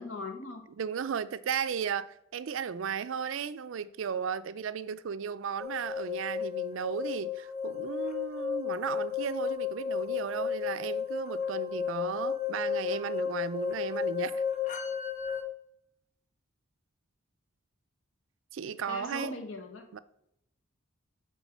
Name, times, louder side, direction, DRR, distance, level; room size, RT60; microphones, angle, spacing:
voice 1, 0.0-0.6 18.9-19.9, left 2 dB, 65° left, 1.3 m, -39 dB
voice 2, 0.8-14.4 18.5-19.4 19.9-20.0, right 7 dB, 65° right, 0.4 m, -35 dB
sound 1, 5.6-15.4, left 8 dB, 35° left, 0.7 m, -33 dB
8.2 x 3.7 x 5.9 m
head